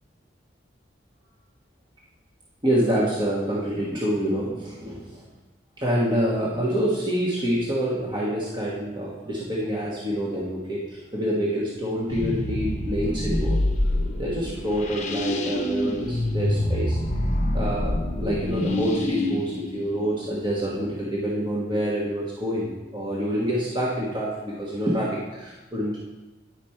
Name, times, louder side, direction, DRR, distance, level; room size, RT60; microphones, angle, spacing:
voice 1, 2.6-5.2 5.8-13.6 14.2-17.0 17.5-26.0, equal, 25° right, -6 dB, 1.2 m, -27 dB
sound 1, 12.1-20.7, left 1 dB, 40° left, 0.8 m, -26 dB
10.0 x 5.2 x 4.3 m, 1.1 s
head